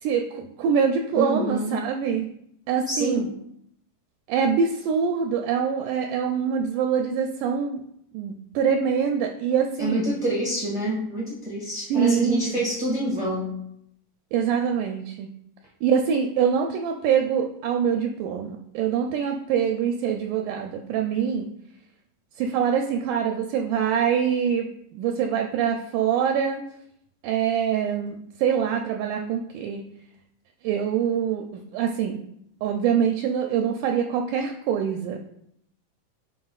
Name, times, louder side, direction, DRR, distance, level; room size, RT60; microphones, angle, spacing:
voice 1, 0.0-2.3 2.7-3.3 4.3-7.8 8.1-10.1 11.9-12.6 14.3-15.3 15.8-21.5 22.4-26.6 27.2-29.8 30.6-32.2 32.6-35.2, right 7 dB, 80° right, 3 dB, 1.9 m, -24 dB
voice 2, 1.1-1.7 2.9-3.2 9.8-13.6, right 1 dB, 40° right, -6 dB, 0.5 m, -27 dB
9.2 x 5.2 x 2.4 m, 0.74 s
omnidirectional pair, 3.9 m